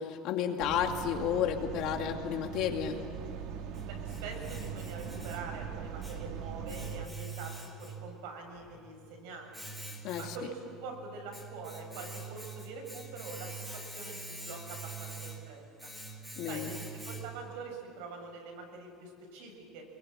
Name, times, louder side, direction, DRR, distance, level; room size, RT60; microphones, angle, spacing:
voice 1, 0.0-3.0 10.0-10.3 16.4-16.7, left 8 dB, 50° left, 3 dB, 2.4 m, -32 dB
noisy air conditioner, 0.6-7.1, right 7 dB, 55° right, 1.8 m, -41 dB
Domestic sounds home sounds, 3.3-17.6, right 3 dB, ahead, 2.4 m, -45 dB
voice 2, 3.9-9.8 10.2-15.9 16.4-19.8, right 4 dB, 90° right, 3 dB, 7.1 m, -45 dB
26.0 x 22.5 x 9.0 m, 2.4 s
cardioid pair, 175°, 0 cm